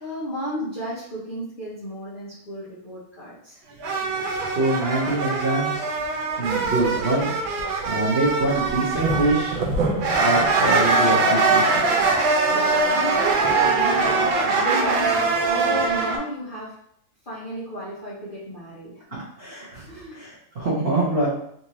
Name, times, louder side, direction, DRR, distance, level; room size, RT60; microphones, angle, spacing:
voice 1, 0.0-3.6 12.5-16.7 17.2-19.2 19.8-20.2, equal, 45° left, -10 dB, 0.7 m, -33 dB
sound 1, 3.8-16.2, right 3 dB, 90° right, 1.4 m, -22 dB
voice 2, 4.5-5.9 6.4-7.3 7.9-9.6 10.2-11.9 19.4-21.3, right 2 dB, 60° right, -6 dB, 0.6 m, -24 dB
3.6 x 2.7 x 3.0 m, 0.70 s
omnidirectional pair, 2.0 m